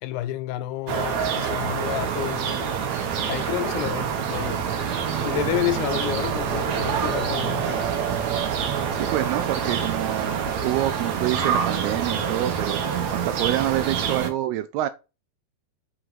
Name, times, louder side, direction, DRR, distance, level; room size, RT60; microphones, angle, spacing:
voice 1, 0.0-2.7 3.3-4.7 5.2-8.0, left 14 dB, 80° left, 2.5 m, -30 dB
sound 1, 0.9-14.3, right 7 dB, 60° right, 2.1 m, -26 dB
voice 2, 9.0-14.9, right 14 dB, 80° right, 2.4 m, -27 dB
7.8 x 4.7 x 5.9 m
omnidirectional pair, 4.8 m